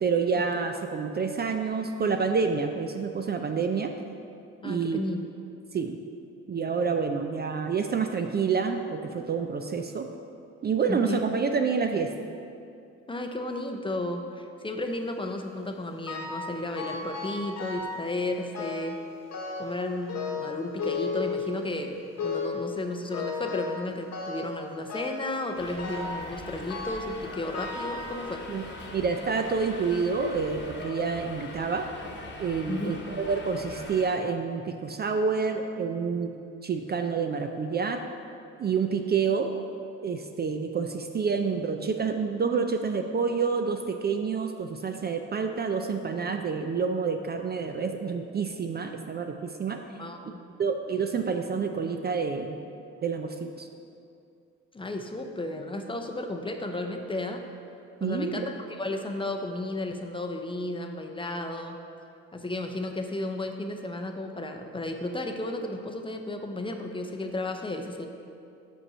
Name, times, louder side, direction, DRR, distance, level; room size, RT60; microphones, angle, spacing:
voice 1, 0.0-3.9 4.6-5.0 5.7-6.0 6.5-10.1 10.6-12.1 28.5-28.6 28.9-31.9 32.4-36.3 36.6-38.0 38.6-39.5 40.0-49.8 50.3-52.6 53.0-53.7 58.0-58.5, right 5 dB, 35° right, 5 dB, 0.4 m, -28 dB
voice 2, 4.6-5.2 10.9-11.2 13.1-19.0 19.6-28.4 32.7-33.0 50.0-50.4 54.7-57.4 58.0-61.8 62.3-68.1, left 2 dB, 15° left, 4 dB, 0.6 m, -33 dB
sound 1, 16.1-16.5 16.8-18.1 18.5-19.0 19.3-19.8 20.1-21.8 22.2-22.7 23.1-23.8 24.1-24.6 24.9-25.3 25.8-26.2 26.7-27.2 27.5-28.6 29.3-29.4 30.2-30.3 30.7-30.8, left 4 dB, 60° left, 1.1 m, -34 dB
Subway metro underground, 25.6-34.2, left 2 dB, 35° left, 1.1 m, -42 dB
6.1 x 5.3 x 5.4 m, 2.5 s
cardioid pair, 90°, 30 cm